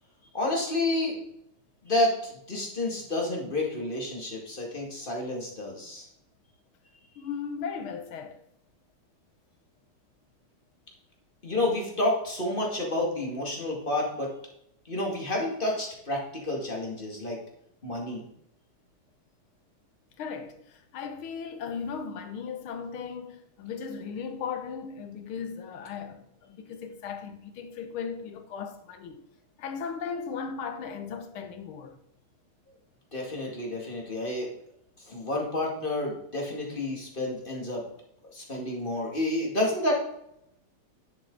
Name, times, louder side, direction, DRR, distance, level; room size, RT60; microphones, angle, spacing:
voice 1, 0.3-1.2 1.8-6.1 11.4-14.3 14.9-17.4 17.8-18.2 33.1-34.5 35.0-37.8 38.3-39.9, left 1 dB, 25° left, 2.3 m, -30 dB
voice 2, 7.2-8.4 20.2-29.3 29.6-32.0, left 6 dB, 80° left, 1.9 m, -37 dB
10.5 x 7.3 x 4.0 m
omnidirectional pair, 2.3 m